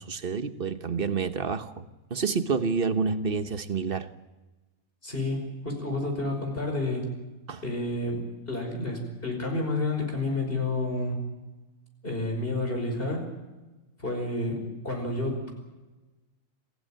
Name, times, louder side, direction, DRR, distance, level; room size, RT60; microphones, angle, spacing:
voice 1, 0.0-4.1 7.5-7.6, right 5 dB, 45° right, 1.3 m, -29 dB
voice 2, 5.0-7.1 7.6-11.2 12.0-13.3 14.0-15.5, left 2 dB, 45° left, 5.6 m, -30 dB
27.0 x 16.0 x 8.9 m
omnidirectional pair, 1.3 m